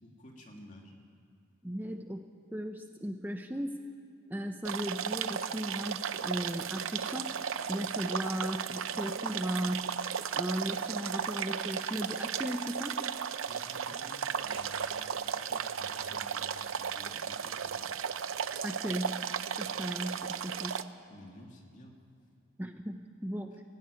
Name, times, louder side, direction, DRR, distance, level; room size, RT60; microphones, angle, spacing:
voice 1, 0.0-0.9 13.5-17.9 21.1-22.0, left 1 dB, 40° left, 1 dB, 2.7 m, -52 dB
voice 2, 1.6-3.8 4.3-7.3 7.7-13.0 18.6-19.2 19.6-20.8 22.6-23.5, equal, 10° right, 5 dB, 0.7 m, -36 dB
sound 1, 4.7-20.8, right 7 dB, 80° right, 0.7 m, -35 dB
17.5 x 17.0 x 9.7 m, 2.5 s
head